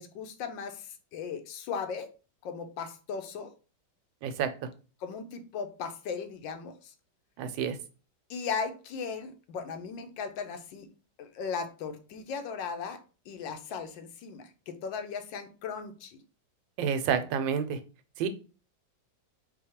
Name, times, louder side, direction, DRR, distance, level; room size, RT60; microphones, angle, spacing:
voice 1, 0.0-2.1 2.4-3.5 5.0-6.9 8.3-10.9 11.2-16.2, left 6 dB, 85° left, 1.4 m, -37 dB
voice 2, 7.4-7.8 16.8-17.8 18.2-18.3, right 7 dB, 85° right, 1.3 m, -29 dB
4.7 x 2.3 x 4.3 m
omnidirectional pair, 2.0 m